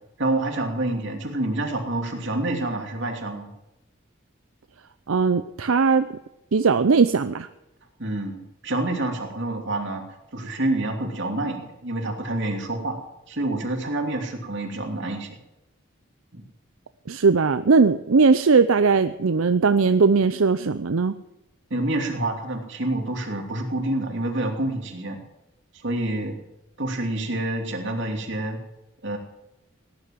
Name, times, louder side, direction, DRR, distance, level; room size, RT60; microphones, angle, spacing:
voice 1, 0.2-3.5 8.0-10.0 10.3-13.0 13.3-15.4 16.3-16.4 21.7-25.2 25.8-26.4 26.8-28.6 29.0-29.2, right 1 dB, 60° right, 3 dB, 2.9 m, -27 dB
voice 2, 5.1-6.1 6.5-7.5 17.1-21.1, right 4 dB, 80° right, 11 dB, 0.6 m, -19 dB
18.0 x 10.5 x 7.5 m, 0.92 s
head